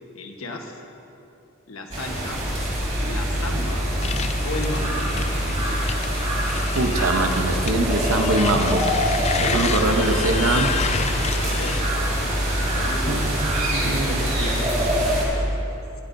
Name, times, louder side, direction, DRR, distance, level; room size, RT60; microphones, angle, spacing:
voice 1, 0.1-0.8 1.7-2.4 3.0-3.9 4.4-5.1 11.3-11.8 12.7-13.4 13.8-15.1, left 2 dB, 70° left, 2 dB, 1.3 m, -33 dB
sound 1, 1.9-15.3, equal, 35° right, 3.4 m, -24 dB
sound 2, 4.0-11.8, left 6 dB, 30° left, 0.4 m, -30 dB
voice 2, 6.7-8.8 9.4-10.7 13.1-13.3 13.6-14.3, right 2 dB, 70° right, 4 dB, 0.9 m, -23 dB
20.5 x 12.5 x 2.7 m, 2.8 s
head